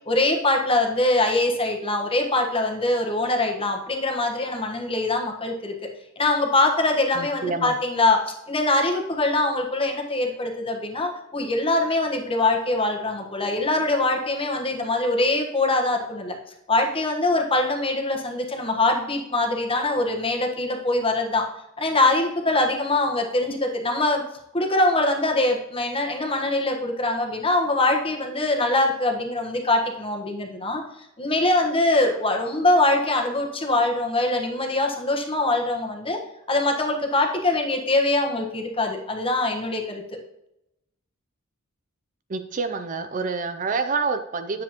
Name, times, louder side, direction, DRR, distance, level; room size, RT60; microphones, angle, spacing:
voice 1, 0.1-5.7 6.2-16.4 16.7-21.5 21.8-24.2 24.5-30.8 31.2-36.2 36.5-40.0, left 2 dB, 25° left, 2 dB, 1.3 m, -23 dB
voice 2, 7.1-7.7 42.3-44.6, right 4 dB, 40° right, 8 dB, 0.5 m, -27 dB
9.9 x 7.3 x 3.0 m, 0.84 s
head